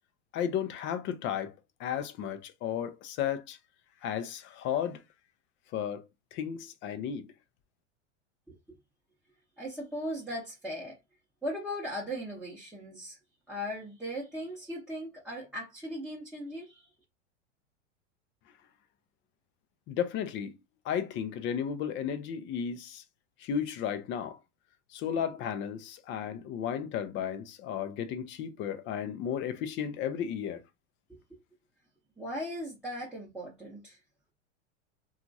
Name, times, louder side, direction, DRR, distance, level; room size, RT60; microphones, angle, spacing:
voice 1, 0.3-1.5 1.8-3.6 4.0-5.0 5.7-7.3 19.9-20.5 20.8-23.0 23.4-24.4 24.9-30.6, left 8 dB, 35° left, 0.5 m, -34 dB
voice 2, 9.6-11.0 11.4-13.2 13.5-16.9 31.1-31.2 32.2-34.0, equal, 5° right, 0.8 m, -38 dB
2.8 x 2.4 x 2.6 m
hypercardioid pair, 115°, 36 cm